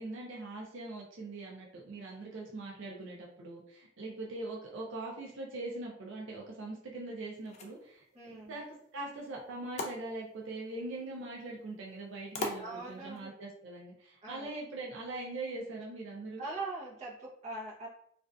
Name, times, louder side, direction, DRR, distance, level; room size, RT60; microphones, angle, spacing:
voice 1, 0.0-16.4, right 2 dB, 70° right, -2 dB, 0.5 m, -42 dB
sound 1, 7.3-13.3, left 3 dB, 35° left, 0.3 m, -45 dB
voice 2, 8.1-8.6 12.6-13.3 14.2-14.5 16.4-17.9, right 2 dB, 35° right, -5 dB, 0.7 m, -42 dB
2.4 x 2.3 x 2.3 m, 0.67 s
head